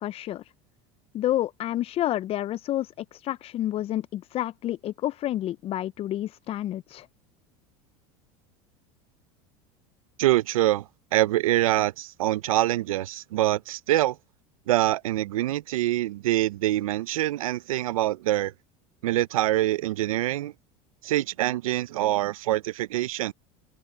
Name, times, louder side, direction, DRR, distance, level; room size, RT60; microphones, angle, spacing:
voice 1, 0.0-0.4 1.1-7.1, left 13 dB, 35° left, 0.4 m, -29 dB
voice 2, 10.2-14.2 14.7-18.5 19.0-20.5 21.0-23.3, right 15 dB, 90° right, 0.6 m, -25 dB
open air
supercardioid pair, 105°, 17 cm